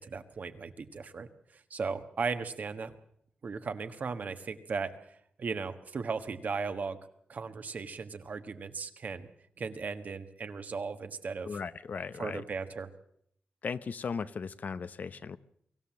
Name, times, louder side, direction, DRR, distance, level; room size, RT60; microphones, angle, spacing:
voice 1, 0.0-2.9 3.4-7.0 7.3-9.3 9.6-11.5 12.2-12.9, right 4 dB, 55° right, 9 dB, 1.4 m, -37 dB
voice 2, 11.5-12.4 13.6-15.4, left 5 dB, 55° left, 14 dB, 0.8 m, -37 dB
23.5 x 15.5 x 7.5 m, 0.71 s
wide cardioid pair, 130°, 3 cm